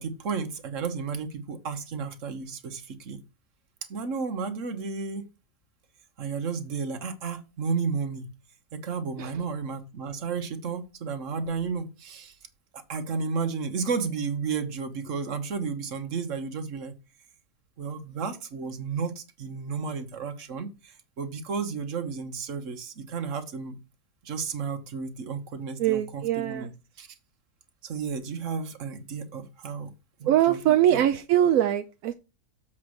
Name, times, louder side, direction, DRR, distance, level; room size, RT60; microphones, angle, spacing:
voice 1, 0.0-3.2 3.9-5.2 6.2-8.3 8.7-12.3 12.7-16.9 17.8-23.8 24.2-26.7 27.0-27.1 27.8-29.9 30.2-31.0, right 5 dB, 55° right, 1.4 m, -32 dB
voice 2, 25.8-26.7 30.2-32.1, right 11 dB, 70° right, 0.9 m, -22 dB
7.4 x 4.3 x 6.3 m
omnidirectional pair, 1.7 m